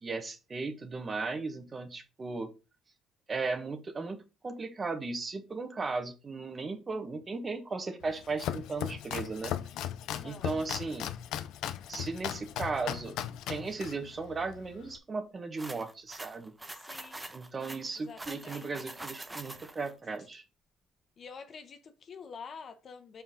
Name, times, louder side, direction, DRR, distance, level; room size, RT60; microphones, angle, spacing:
voice 1, 0.0-2.5 3.3-4.2 4.4-9.6 10.2-11.1 11.9-13.1 13.5-16.5 17.3-20.4, right 3 dB, 35° right, 1.4 m, -36 dB
Domestic sounds home sounds, 8.0-15.0, left 11 dB, 75° left, 0.5 m, -38 dB
voice 2, 10.1-10.5 16.7-17.3 18.0-18.7 21.2-23.2, left 5 dB, 50° left, 1.0 m, -47 dB
sound 1, 15.6-19.9, right 2 dB, 15° right, 1.0 m, -44 dB
5.5 x 4.5 x 3.9 m
supercardioid pair, 65°, 0 cm